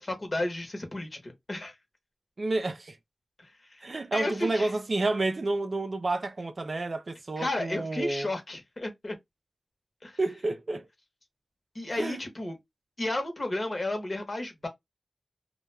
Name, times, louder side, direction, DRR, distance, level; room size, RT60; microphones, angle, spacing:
voice 1, 0.0-1.7 3.4-3.8 4.1-4.7 7.4-9.2 10.0-10.2 11.7-12.6 13.0-14.7, left 1 dB, 40° left, 0.9 m, -33 dB
voice 2, 2.4-3.0 3.8-8.3 10.2-10.9 11.9-12.2, right 2 dB, 50° right, 0.4 m, -30 dB
2.2 x 2.2 x 3.1 m
wide cardioid pair, 80°, 0 cm